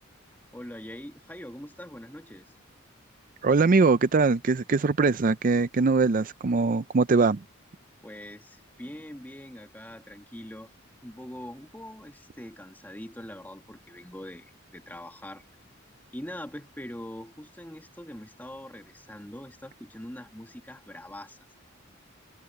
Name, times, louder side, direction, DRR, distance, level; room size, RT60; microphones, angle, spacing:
voice 1, 0.5-2.5 8.0-10.7 11.0-15.4 16.1-21.6, left 1 dB, 10° left, 2.2 m, -43 dB
voice 2, 3.4-7.4, right 4 dB, 45° right, 0.5 m, -22 dB
head